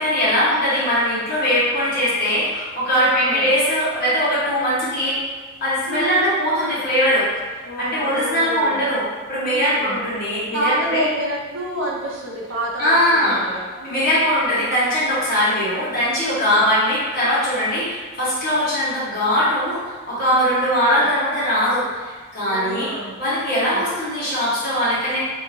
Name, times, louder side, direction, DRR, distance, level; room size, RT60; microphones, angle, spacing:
voice 1, 0.0-5.2 5.6-7.3 7.8-9.0 9.3-11.0 12.8-13.4 13.8-19.8 20.1-25.2, equal, 50° left, -10 dB, 1.2 m, -20 dB
voice 2, 2.8-3.5 5.9-6.2 7.6-8.8 9.5-10.0 10.5-14.2 16.3-16.6 20.2-21.1 22.5-23.2 23.5-23.8, right 1 dB, 70° right, -3 dB, 0.6 m, -28 dB
2.7 x 2.6 x 2.7 m, 1.4 s
head